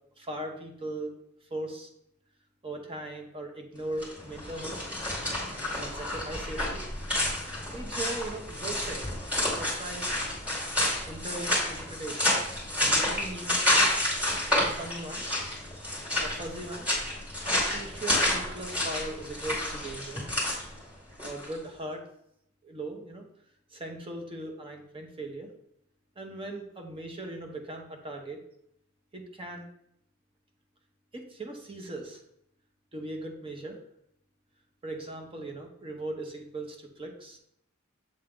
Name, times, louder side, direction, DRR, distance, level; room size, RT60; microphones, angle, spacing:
voice 1, 0.2-1.2 1.5-1.9 2.6-4.8 5.8-6.9 7.7-9.2 9.6-10.2 11.1-12.4 12.8-13.9 14.6-15.2 16.2-16.9 17.4-20.2 21.2-22.0 22.6-23.2 23.7-25.5 26.2-28.4 29.1-29.7 31.1-32.2 32.9-33.8 34.8-37.4, right 1 dB, 25° right, 3 dB, 0.8 m, -39 dB
sound 1, 3.9-21.5, left 1 dB, 5° right, 2.4 m, -29 dB
7.6 x 3.6 x 3.7 m, 0.74 s
head